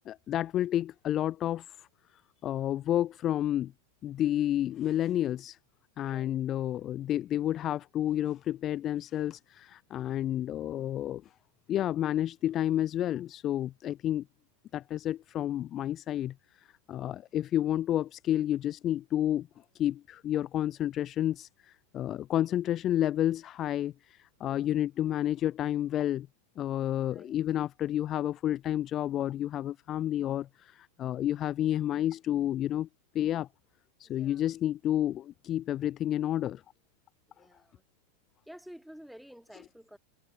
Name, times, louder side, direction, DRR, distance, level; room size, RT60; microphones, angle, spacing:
voice 1, 0.1-1.9 2.4-3.7 4.0-5.6 6.0-11.2 11.7-14.2 14.7-19.5 19.7-26.3 26.6-32.9 33.1-33.5 34.0-36.6, left 12 dB, 30° left, 0.4 m, -30 dB
voice 2, 6.0-6.4 24.5-24.9 27.1-27.4 34.2-34.4 37.3-37.8 38.5-40.0, equal, ahead, 1.5 m, -51 dB
figure-of-eight pair, 90°, 0 cm